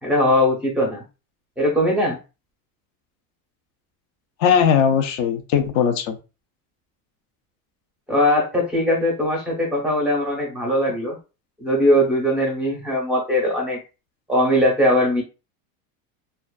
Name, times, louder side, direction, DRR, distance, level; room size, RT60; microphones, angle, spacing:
voice 1, 0.0-1.0 1.6-2.2 8.1-11.2 11.6-13.8 14.3-15.2, left 1 dB, ahead, -2 dB, 0.6 m, -20 dB
voice 2, 4.4-6.2, left 7 dB, 40° left, 7 dB, 0.4 m, -19 dB
2.4 x 2.2 x 2.3 m, 0.30 s
supercardioid pair, 145°, 47 cm